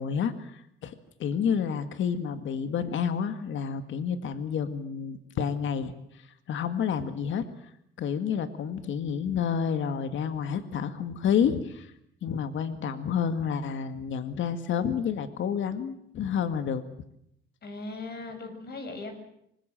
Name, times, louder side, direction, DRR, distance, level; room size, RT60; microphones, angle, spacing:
voice 1, 0.0-7.5 8.0-11.9 12.2-16.8, left 7 dB, 75° left, 10 dB, 2.1 m, -29 dB
voice 2, 17.6-19.1, left 3 dB, 55° left, 6 dB, 7.2 m, -38 dB
25.0 x 21.5 x 7.7 m, 0.76 s
cardioid pair, 90°, 20 cm